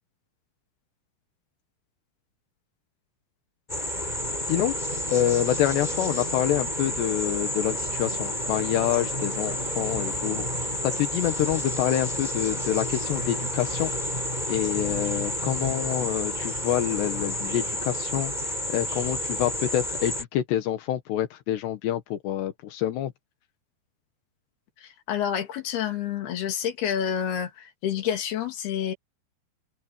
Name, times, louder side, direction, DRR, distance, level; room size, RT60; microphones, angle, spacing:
sound 1, 3.7-20.2, left 1 dB, 10° left, 6.4 m, -30 dB
voice 1, 5.1-13.9 14.5-23.1, left 12 dB, 85° left, 3.6 m, -27 dB
voice 2, 24.8-28.9, left 9 dB, 70° left, 4.4 m, -29 dB
omnidirectional pair, 4.7 m